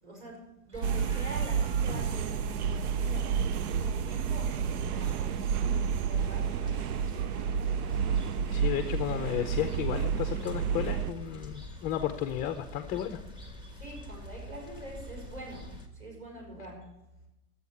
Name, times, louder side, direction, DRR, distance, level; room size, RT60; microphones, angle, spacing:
voice 1, 0.0-7.6 13.6-16.9, right 2 dB, 25° right, 5.6 m, -45 dB
sound 1, 0.7-15.9, left 1 dB, 10° right, 1.3 m, -46 dB
sound 2, 0.8-11.1, right 7 dB, 70° right, 0.7 m, -30 dB
Drum, 1.9-4.6, left 2 dB, 45° right, 2.1 m, -47 dB
voice 2, 8.5-13.2, left 10 dB, 20° left, 0.5 m, -33 dB
12.0 x 8.4 x 9.7 m
supercardioid pair, 150°, 46 cm